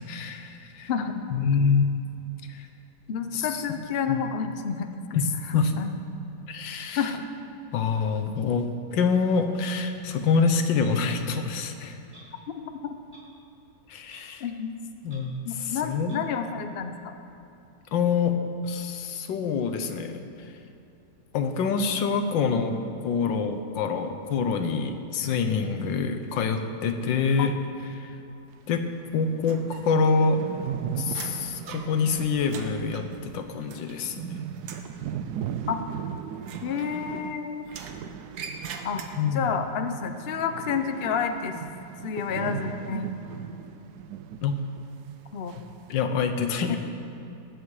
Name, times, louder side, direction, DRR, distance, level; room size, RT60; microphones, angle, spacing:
voice 1, 0.1-0.9 1.3-2.0 2.5-2.7 3.3-3.6 4.1-4.2 5.1-5.3 5.5-5.7 6.5-7.1 7.7-12.0 13.9-14.4 15.0-16.3 17.9-18.4 18.6-20.2 21.3-22.8 23.0-27.5 27.9-28.2 28.7-30.4 30.9-34.4 39.2-39.5 44.4-44.6 45.9-46.8, left 5 dB, 80° left, 7 dB, 1.6 m, -26 dB
voice 2, 3.1-5.2 5.8-5.9 7.0-7.3 12.8-12.9 14.4-14.7 15.4-17.1 27.4-27.5 35.7-35.8 36.6-37.6 38.8-39.0 39.3-41.6 42.0-43.1 45.3-45.6 46.7-46.8, left 6 dB, 55° left, 7 dB, 0.6 m, -29 dB
Clock, 12.1-12.3 13.1-13.2 14.1-14.3 14.6-14.7 15.1-15.2 16.1-16.2, right 2 dB, 30° right, 2.3 m, -52 dB
sound 1, 28.8-28.9 29.2-29.3 29.5-39.7 40.0-44.5 44.8-44.9 45.5-45.9, right 8 dB, 70° right, 1.0 m, -37 dB
sound 2, 29.4-30.2 30.5-34.3 34.6-35.0 36.4-37.3 37.7-39.5, right 5 dB, 90° right, 1.7 m, -43 dB
20.0 x 8.6 x 4.8 m, 2.8 s
omnidirectional pair, 2.0 m